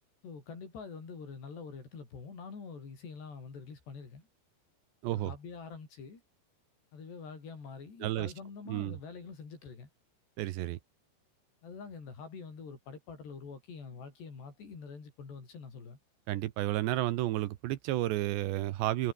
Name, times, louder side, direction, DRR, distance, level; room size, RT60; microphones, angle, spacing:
voice 1, 0.2-4.3 5.1-6.2 6.9-9.9 11.6-16.0, left 5 dB, 65° left, 8.5 m, -46 dB
voice 2, 8.0-8.3 8.7-9.0 10.4-10.8 16.3-19.1, right 15 dB, 75° right, 3.1 m, -31 dB
omnidirectional pair, 5.3 m